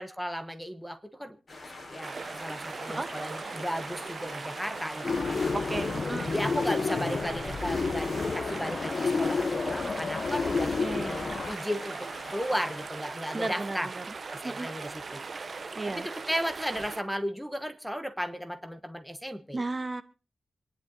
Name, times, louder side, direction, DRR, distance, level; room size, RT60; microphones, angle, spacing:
voice 1, 0.0-1.4 1.9-5.4 6.3-13.9 14.4-15.2 15.9-19.6, equal, ahead, 10 dB, 1.1 m, -35 dB
sound 1, 1.5-12.9, left 2 dB, 35° left, 5.4 m, -45 dB
sound 2, 2.0-17.0, right 4 dB, 45° right, 0.9 m, -39 dB
sound 3, 5.0-11.5, left 4 dB, 50° left, 0.8 m, -30 dB
voice 2, 5.5-6.3 10.8-11.3 13.3-14.1 14.4-14.7 15.7-16.1 19.5-20.0, right 2 dB, 25° right, 11 dB, 1.2 m, -34 dB
27.0 x 11.0 x 2.7 m, 0.34 s
wide cardioid pair, 150°, 0 cm